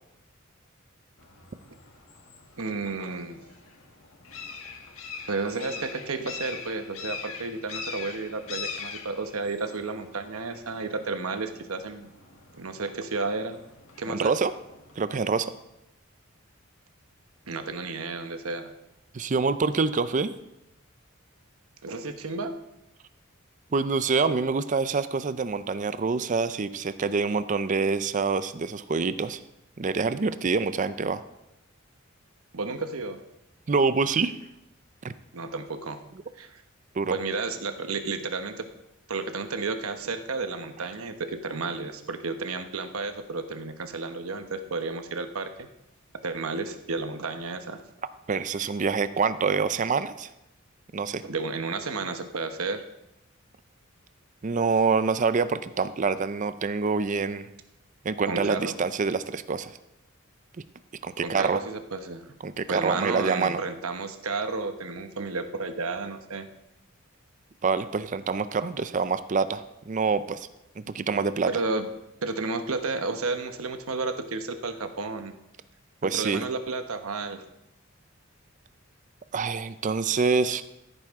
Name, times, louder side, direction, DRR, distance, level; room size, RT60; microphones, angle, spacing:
sound 1, 1.2-15.0, left 5 dB, 70° left, 1.4 m, -43 dB
voice 1, 2.6-3.4 5.3-12.1 12.5-13.6 14.0-14.4 17.5-18.7 21.8-22.6 32.5-33.2 35.3-36.0 36.4-36.6 37.1-38.7 39.1-45.7 46.2-47.8 51.2-52.8 58.2-58.8 61.2-62.3 62.7-66.5 70.9-71.0 71.5-71.9 72.2-75.4 76.1-77.4, right 3 dB, 90° right, 8 dB, 1.0 m, -32 dB
voice 2, 14.1-14.5 15.0-15.5 19.1-20.3 23.7-29.4 29.8-31.2 33.7-34.4 35.0-35.1 36.9-37.2 48.3-50.3 50.9-51.2 54.4-57.5 58.0-59.7 61.0-61.6 62.4-63.6 67.6-70.5 70.8-71.5 76.0-76.4 79.3-80.6, right 4 dB, 35° right, 13 dB, 0.5 m, -26 dB
15.0 x 9.1 x 3.6 m, 0.90 s
head